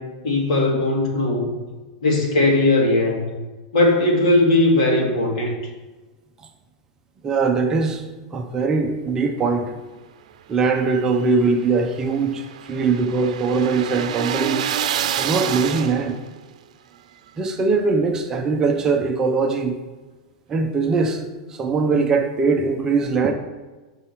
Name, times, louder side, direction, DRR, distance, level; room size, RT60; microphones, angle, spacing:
voice 1, 0.0-1.5 2.0-3.3 3.7-5.5, left 2 dB, 70° left, 0 dB, 2.3 m, -18 dB
voice 2, 7.2-8.0 8.3-9.7 10.5-14.6 15.2-16.2 17.4-19.7 20.5-21.2 21.5-23.3, right 4 dB, 15° right, 3 dB, 0.6 m, -21 dB
sound 1, 10.8-16.3, right 9 dB, 80° right, 0.6 m, -28 dB
8.0 x 5.5 x 5.8 m, 1.2 s
supercardioid pair, 170°, 4 cm